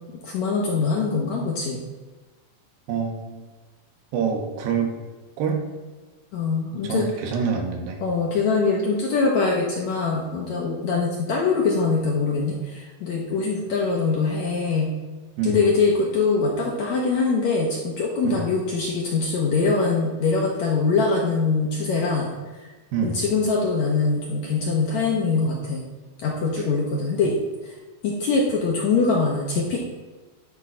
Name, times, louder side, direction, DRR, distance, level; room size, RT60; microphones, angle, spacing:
voice 1, 0.2-1.8 6.3-7.1 8.0-14.9 15.4-22.3 23.0-25.8 26.2-27.4 27.6-27.7 28.0-29.8, left 4 dB, 65° left, -2 dB, 1.8 m, -23 dB
voice 2, 2.9-3.5 4.1-4.9 5.4-5.6 6.7-8.0 15.4-15.6 18.2-18.4 22.9-23.2 26.6-26.7, right 6 dB, 75° right, 2 dB, 2.8 m, -26 dB
10.5 x 3.8 x 5.6 m, 1.3 s
omnidirectional pair, 4.4 m